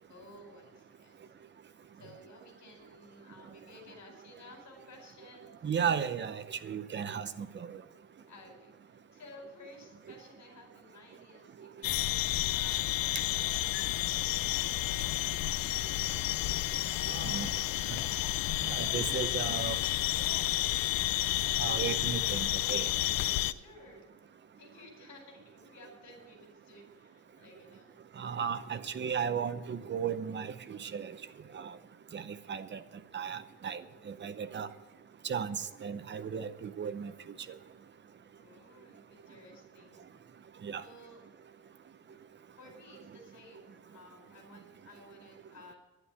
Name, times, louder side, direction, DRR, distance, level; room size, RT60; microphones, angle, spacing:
voice 1, 0.1-1.3 1.9-5.7 8.3-15.6 23.5-24.3 24.6-28.0 38.4-40.1 40.8-41.2 42.1-42.2 42.6-45.8, left 2 dB, 55° left, 2 dB, 4.8 m, -55 dB
voice 2, 5.6-7.3 17.1-17.5 18.7-19.8 21.6-22.9 28.2-31.1 31.5-31.6 32.1-32.2 32.5-32.8 33.1-33.8 34.1-34.7 35.2-37.1 40.6-40.8, right 7 dB, 35° right, 11 dB, 0.7 m, -35 dB
sound 1, 11.8-23.5, left 15 dB, 85° left, 0.6 m, -31 dB
11.5 x 9.7 x 8.3 m, 1.2 s
cardioid pair, 165°, 34 cm